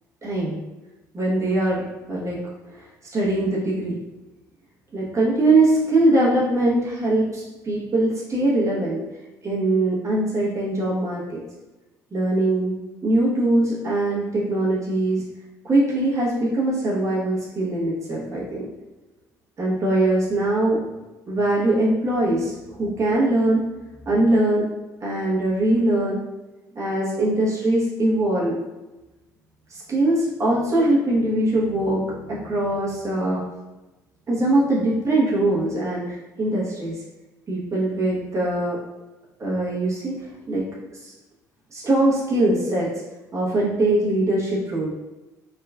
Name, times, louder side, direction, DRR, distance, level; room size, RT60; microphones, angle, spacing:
voice 1, 0.2-0.6 1.1-2.4 3.1-4.0 4.9-9.0 9.4-11.4 12.1-15.2 15.6-18.6 19.6-20.8 21.3-23.6 24.0-24.6 25.0-26.2 26.7-28.5 29.7-33.4 34.3-37.0 37.5-38.8 39.4-40.1 40.5-40.6 41.0-41.1 41.7-42.9 43.3-44.9, right 1 dB, 35° right, -6 dB, 1.1 m, -22 dB
3.4 x 2.9 x 2.4 m, 1.1 s
hypercardioid pair, 55°, 9 cm